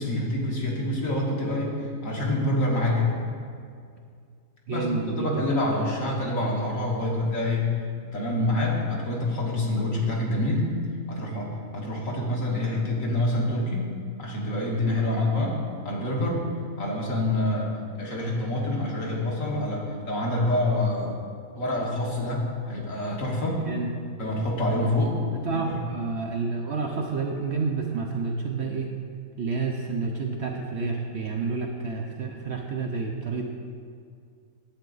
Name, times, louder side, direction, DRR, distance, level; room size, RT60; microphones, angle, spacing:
voice 1, 0.0-1.8 2.0-3.1 4.7-7.7 8.1-10.8 11.1-13.9 14.2-16.5 16.8-17.7 18.0-21.1 21.6-23.7 24.2-25.2 25.6-25.7, left 1 dB, 60° left, -3 dB, 2.0 m, -26 dB
voice 2, 4.7-5.4 23.7-23.9 25.4-28.9 29.4-33.5, right 4 dB, 60° right, 1 dB, 0.8 m, -29 dB
10.5 x 7.9 x 3.9 m, 2.2 s
omnidirectional pair, 1.6 m